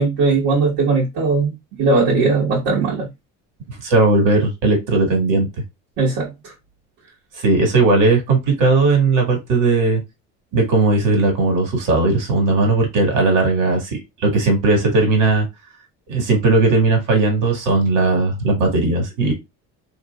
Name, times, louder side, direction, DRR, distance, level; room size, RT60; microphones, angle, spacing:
voice 1, 0.0-3.1 6.0-6.5, right 3 dB, 85° right, 1.6 m, -19 dB
voice 2, 3.8-5.5 7.3-10.0 10.5-15.5 16.1-19.3, right 3 dB, 70° right, 1.8 m, -17 dB
3.0 x 3.0 x 2.3 m
cardioid pair, 95°, 32 cm